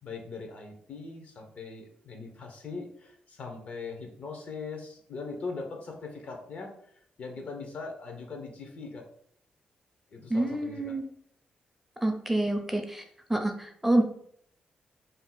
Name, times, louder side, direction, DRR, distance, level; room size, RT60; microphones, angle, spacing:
voice 1, 0.0-6.7 7.2-9.0 10.1-11.0, left 4 dB, 60° left, 3 dB, 0.7 m, -40 dB
voice 2, 10.3-11.0 12.0-13.0 13.3-14.0, right 1 dB, 5° right, 4 dB, 0.4 m, -27 dB
2.6 x 2.2 x 3.8 m, 0.65 s
cardioid pair, 90°, 3 cm